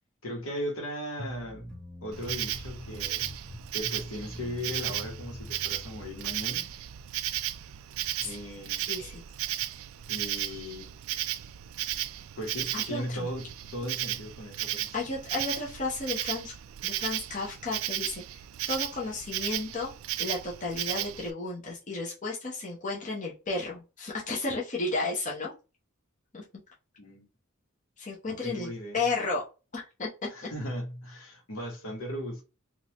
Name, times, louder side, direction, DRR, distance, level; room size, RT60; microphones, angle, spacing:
voice 1, 0.2-1.7 2.0-3.3 3.7-6.7 8.2-8.9 10.1-10.9 12.3-13.4 13.7-14.9 27.0-27.2 28.3-29.0 30.3-32.5, equal, 75° left, 1.4 m, -37 dB
sound 1, 1.2-6.5, left 1 dB, 5° left, 1.2 m, -44 dB
Insect, 2.1-21.3, right 13 dB, 75° right, 0.3 m, -35 dB
voice 2, 8.8-9.2 12.7-13.3 14.9-16.5 16.8-18.2 18.7-25.5 26.3-26.4 28.0-29.4 29.7-30.1 30.4-30.5, left 3 dB, 40° left, 0.9 m, -33 dB
3.8 x 2.5 x 3.0 m
head